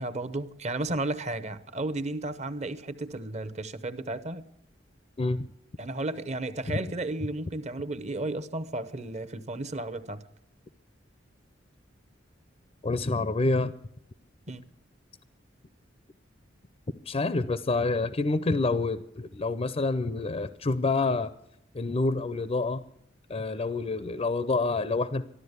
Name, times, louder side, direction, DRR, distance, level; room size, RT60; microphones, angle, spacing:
voice 1, 0.0-4.4 5.8-10.2 14.5-14.6, right 2 dB, 35° right, 0.9 m, -33 dB
voice 2, 12.8-13.7 17.1-21.3 21.7-22.8 23.3-25.2, left 3 dB, 30° left, 0.5 m, -27 dB
13.5 x 12.5 x 8.1 m
head